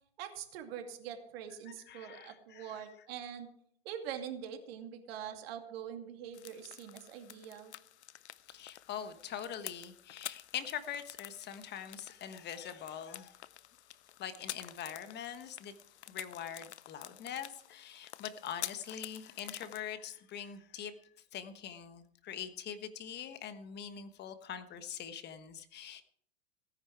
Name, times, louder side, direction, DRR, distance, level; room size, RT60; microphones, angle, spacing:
voice 1, 0.2-3.5 3.8-7.7, right 9 dB, 60° right, 5 dB, 2.5 m, -44 dB
voice 2, 1.7-2.8 8.5-13.4 14.2-15.7 16.1-20.9 21.3-26.0, left 9 dB, 30° left, 10 dB, 1.3 m, -43 dB
sound 1, 6.3-19.8, left 12 dB, 80° left, 0.7 m, -49 dB
17.0 x 10.0 x 4.7 m, 0.63 s
hypercardioid pair, 110°, 33 cm